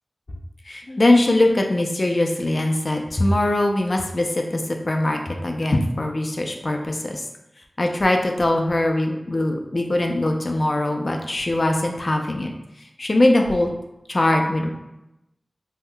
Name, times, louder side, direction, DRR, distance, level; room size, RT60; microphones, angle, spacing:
voice 1, 0.7-7.2 7.8-12.5 13.0-13.7 14.1-14.7, left 1 dB, 50° left, 3 dB, 0.4 m, -21 dB
5.4 x 2.1 x 2.2 m, 0.92 s
wide cardioid pair, 75°, 0 cm